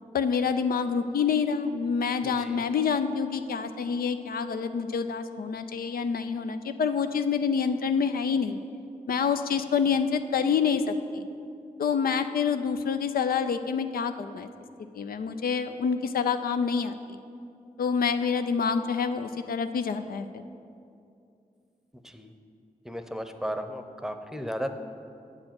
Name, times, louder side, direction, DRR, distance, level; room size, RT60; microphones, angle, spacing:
voice 1, 0.1-8.6 9.1-11.3 11.8-14.5 15.0-17.2 17.8-20.3, left 6 dB, 80° left, 9 dB, 0.4 m, -27 dB
voice 2, 2.2-2.8 22.1-22.3 22.9-24.7, equal, 5° right, 7 dB, 0.7 m, -35 dB
8.4 x 4.9 x 7.6 m, 2.5 s
cardioid pair, 40°, 15 cm